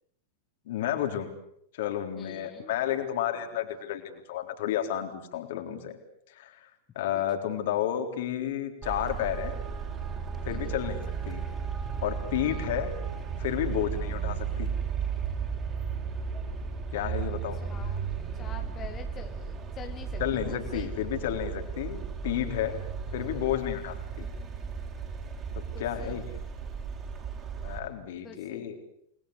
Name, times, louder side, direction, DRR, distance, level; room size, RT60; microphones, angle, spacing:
voice 1, 0.7-1.3 1.7-6.0 6.3-6.7 7.0-9.5 10.4-11.0 11.3-11.5 12.0-12.9 13.4-14.7 16.9-17.6 20.2-22.8 23.1-24.3 25.5-26.2 27.6-28.8, left 11 dB, 55° left, 6 dB, 3.8 m, -31 dB
voice 2, 2.2-2.7 10.5-10.8 12.4-12.7 17.6-18.1 18.4-20.2 20.5-20.9 25.7-26.2 28.2-28.7, left 8 dB, 25° left, 5 dB, 1.9 m, -46 dB
Traffic noise roadway noise, 8.8-27.8, right 6 dB, 25° right, 6.7 m, -35 dB
29.0 x 21.0 x 8.4 m, 0.73 s
figure-of-eight pair, 90°, 0 cm